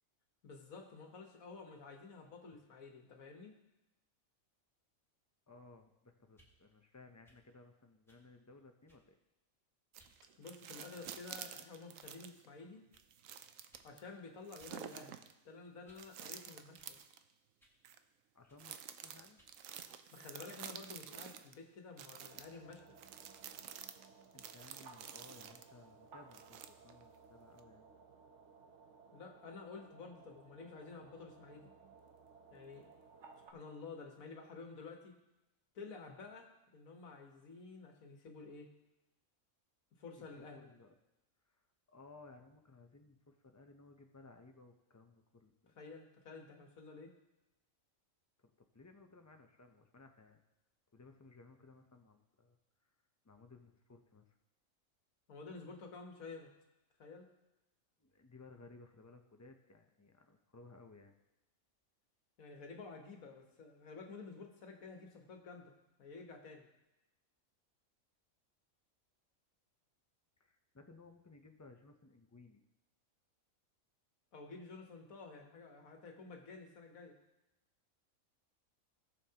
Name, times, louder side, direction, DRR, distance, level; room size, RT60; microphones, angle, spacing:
voice 1, 0.4-3.6 10.4-12.8 13.8-15.2 15.4-17.0 19.8-23.0 29.1-31.7 32.5-32.9 33.5-35.2 35.7-38.7 40.0-40.7 45.8-47.1 55.3-56.5 57.0-57.3 62.4-65.7 66.0-66.7 74.3-77.2, left 4 dB, 85° left, 3 dB, 1.7 m, -51 dB
voice 2, 5.5-9.2 18.3-19.4 24.3-27.9 40.2-40.9 41.5-41.6 41.9-45.8 48.4-50.4 50.9-52.6 53.2-54.4 58.0-61.1 70.4-72.6, left 3 dB, 25° left, 5 dB, 0.4 m, -59 dB
sound 1, 6.3-6.6 7.2-7.5 8.1-8.3 8.9-9.2 10.0-10.2 11.0-11.4 12.0-12.2 12.9-13.1 13.7-13.9 14.6-14.8 15.1-16.1 16.8-17.0 17.6-17.8 18.5-18.7 19.4-19.6, equal, ahead, 1.8 m, -70 dB
sound 2, 9.9-12.5 12.9-14.0 14.5-15.3 16.0-17.2 17.8-18.0 18.6-21.5 22.0-25.7 26.3-27.0 27.6-27.7, right 9 dB, 75° right, 1.0 m, -50 dB
sound 3, 22.3-33.5, right 5 dB, 60° right, 1.2 m, -60 dB
17.5 x 7.1 x 2.9 m, 0.97 s
omnidirectional pair, 1.4 m